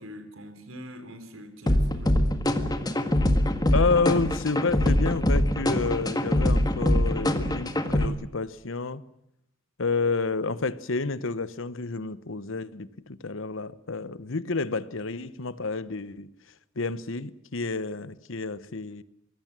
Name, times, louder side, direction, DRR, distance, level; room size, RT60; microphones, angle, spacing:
voice 1, 0.0-2.2, equal, 80° right, 4.3 m, -43 dB
sound 1, 1.7-8.1, left 1 dB, 20° left, 1.8 m, -24 dB
voice 2, 3.7-9.0 9.8-16.3 16.8-19.0, left 4 dB, 70° left, 1.0 m, -29 dB
24.5 x 20.0 x 7.5 m
head